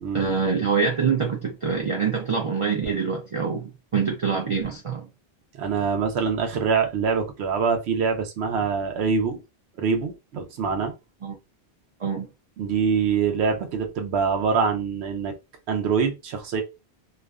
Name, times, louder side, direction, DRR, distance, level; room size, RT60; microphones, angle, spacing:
voice 1, 0.1-5.1 11.2-11.4 12.0-12.3, right 5 dB, 55° right, 0.3 m, -25 dB
voice 2, 5.5-9.4 9.8-10.9 12.6-15.3 15.7-16.6, right 5 dB, 90° right, 0.9 m, -24 dB
2.4 x 2.3 x 2.3 m
omnidirectional pair, 1.1 m